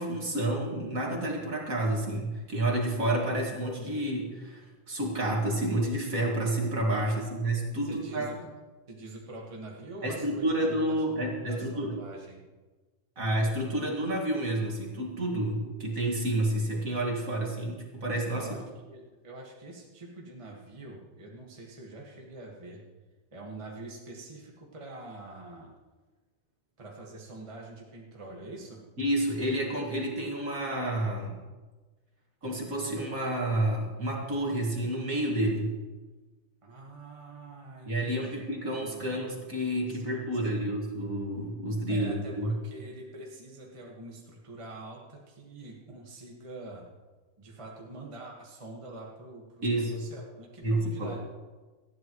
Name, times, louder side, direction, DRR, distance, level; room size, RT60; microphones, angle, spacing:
voice 1, 0.0-8.4 10.0-12.0 13.2-18.5 29.0-31.4 32.4-35.7 37.9-42.5 49.6-49.9 50.6-51.1, right 1 dB, 45° right, -1 dB, 2.6 m, -29 dB
voice 2, 7.0-7.4 7.8-8.4 8.9-12.4 18.3-18.6 18.9-22.8 23.3-25.7 26.8-28.8 36.6-38.4 38.8-39.1 39.9-40.7 41.9-46.9 47.4-51.2, right 2 dB, 15° right, -2 dB, 1.6 m, -45 dB
19.0 x 13.5 x 3.1 m, 1.2 s
omnidirectional pair, 2.1 m